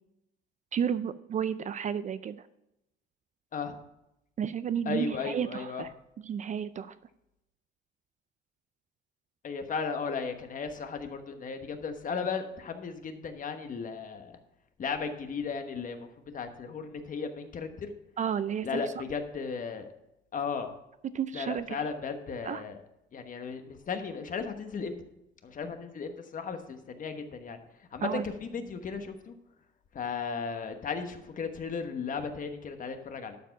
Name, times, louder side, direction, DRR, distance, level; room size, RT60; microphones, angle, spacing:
voice 1, 0.7-2.4 4.4-5.9 6.2-6.9 18.2-18.8 21.1-21.8 22.4-22.6 28.0-28.2, right 8 dB, 35° right, 14 dB, 0.4 m, -32 dB
voice 2, 4.8-5.8 9.4-14.4 14.8-17.9 18.6-19.9 20.3-20.7 21.3-22.8 23.1-25.0 25.4-27.6 27.9-29.3 29.9-33.4, left 5 dB, 40° left, 7 dB, 1.2 m, -35 dB
12.0 x 4.7 x 5.9 m, 0.86 s
cardioid pair, 105°, 20 cm